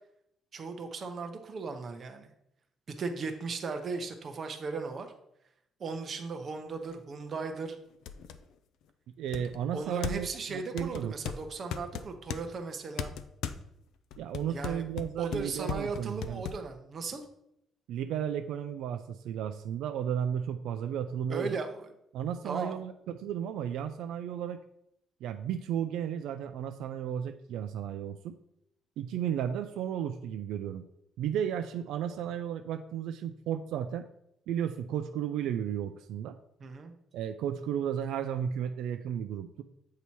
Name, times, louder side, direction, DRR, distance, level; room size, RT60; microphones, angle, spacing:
voice 1, 0.5-2.3 2.9-5.1 5.8-7.8 9.7-13.1 14.5-14.8 15.2-17.2 21.3-21.9 22.4-22.8 36.6-36.9, right 4 dB, 35° right, 5 dB, 0.7 m, -37 dB
sound 1, 6.9-7.0 7.5-7.6 8.1-8.4 9.3-10.4 10.8-12.4 13.0-13.6 14.1-16.6, left 8 dB, 75° left, 0.4 m, -37 dB
voice 2, 9.2-11.1 14.2-16.4 17.9-21.6 22.1-24.6 25.2-28.4 29.0-30.9 31.2-34.1 34.5-36.4 37.1-39.6, right 9 dB, 80° right, 7 dB, 0.3 m, -34 dB
8.2 x 2.8 x 4.5 m, 0.78 s
cardioid pair, 155°, 0 cm